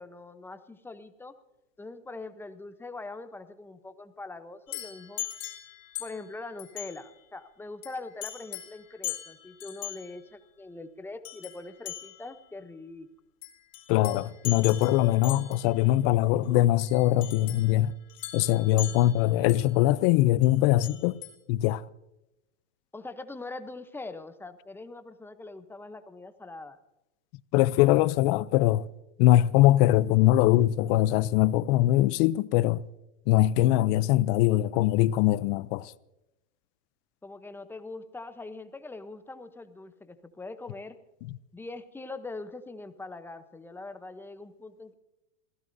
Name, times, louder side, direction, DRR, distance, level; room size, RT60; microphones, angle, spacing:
voice 1, 0.0-1.3 1.8-5.2 6.0-13.1 22.9-26.8 37.2-41.0 41.5-44.9, left 3 dB, 5° left, 0.8 m, -42 dB
sound 1, 4.7-6.3 6.6-7.0 7.8-7.9 8.2-8.8 9.0-10.0 11.2-11.6 11.9-12.3 13.4-15.7 16.8-17.7 18.1-19.7 20.4-20.5 20.8-21.3, left 15 dB, 70° left, 3.1 m, -39 dB
voice 2, 13.9-17.9 18.3-21.2 21.5-21.8 27.5-28.8 29.2-32.8 33.3-35.9, left 15 dB, 45° left, 0.6 m, -22 dB
26.5 x 16.0 x 2.7 m
supercardioid pair, 125°, 40 cm